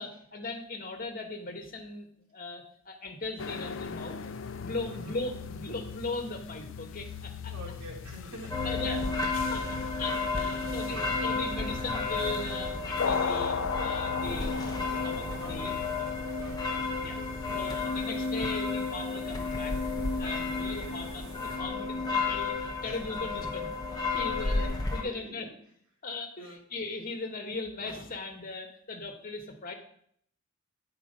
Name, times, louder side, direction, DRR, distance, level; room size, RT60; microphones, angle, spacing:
voice 1, 0.0-4.2 4.6-7.5 8.6-9.6 10.0-16.1 16.6-16.7 17.0-17.2 17.5-19.8 20.2-25.5 26.0-29.7, left 3 dB, 40° left, 3 dB, 1.2 m, -39 dB
sound 1, 3.4-17.9, left 6 dB, 55° left, 0.5 m, -38 dB
voice 2, 4.8-5.2 7.5-8.7 9.5-9.9 10.6-11.0 15.2-16.9 17.3-17.7 18.1-18.3 20.6-21.0 22.8-23.0 24.3-24.7 25.2-25.4 26.4-26.6, equal, 75° right, -2 dB, 2.7 m, -48 dB
sound 2, 8.5-25.0, left 3 dB, 15° left, 0.9 m, -32 dB
sound 3, 14.1-16.5 17.4-21.6, equal, 5° right, 3.7 m, -48 dB
8.6 x 4.6 x 5.3 m, 0.65 s
head